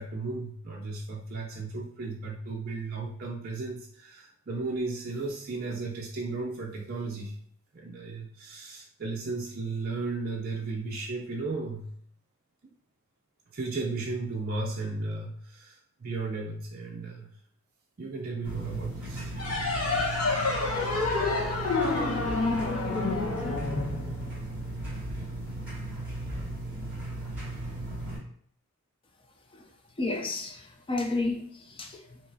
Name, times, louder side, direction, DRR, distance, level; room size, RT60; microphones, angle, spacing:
voice 1, 0.0-7.4 7.7-11.9 13.5-17.3 18.0-19.3 19.9-20.2, right 3 dB, 45° right, 0.4 m, -35 dB
sound 1, 18.4-28.2, right 1 dB, 5° right, 1.8 m, -36 dB
sound 2, 19.4-24.6, left 3 dB, 75° left, 1.2 m, -28 dB
voice 2, 30.0-32.2, left 2 dB, 25° left, 0.4 m, -32 dB
5.1 x 2.9 x 2.7 m
head